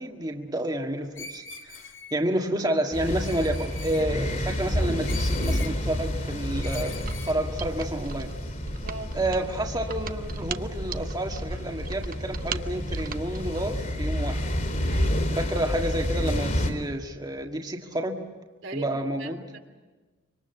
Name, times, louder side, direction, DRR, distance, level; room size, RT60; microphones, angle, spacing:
voice 1, 0.0-1.8 2.1-7.0 7.3-8.3 9.1-14.4 15.3-18.2 18.7-19.5, right 1 dB, 20° right, 2 dB, 1.7 m, -30 dB
Screech, 1.1-2.2 3.2-4.1 5.1-5.7 6.6-7.4, left 5 dB, 90° left, 2.5 m, -41 dB
sound 1, 2.9-16.7, equal, 45° left, 3.8 m, -30 dB
Mechanisms, 6.5-13.7, right 4 dB, 45° right, 0.9 m, -38 dB
voice 2, 14.9-15.2 18.6-19.6, right 2 dB, 80° right, 4 dB, 3.2 m, -39 dB
26.0 x 24.5 x 8.1 m, 1.3 s
head